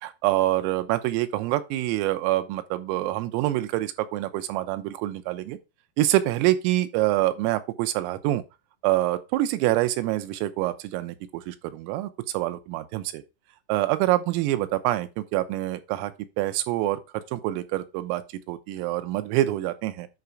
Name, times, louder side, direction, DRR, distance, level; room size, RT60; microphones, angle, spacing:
voice 1, 0.0-5.6 6.0-8.4 8.8-13.2 13.7-16.1 16.4-18.2 18.5-20.1, right 15 dB, 85° right, 3.5 m, -26 dB
9.6 x 5.0 x 4.8 m
omnidirectional pair, 5.9 m